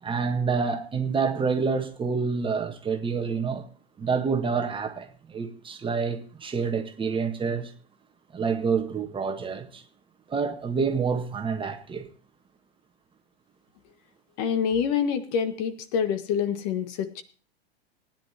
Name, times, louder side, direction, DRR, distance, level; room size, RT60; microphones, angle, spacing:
voice 1, 0.0-3.7 4.0-7.7 8.3-9.8 10.3-12.1, right 5 dB, 15° right, 1.5 m, -28 dB
voice 2, 14.4-17.2, left 7 dB, 45° left, 1.8 m, -26 dB
20.0 x 10.5 x 2.9 m
figure-of-eight pair, 95°, 31 cm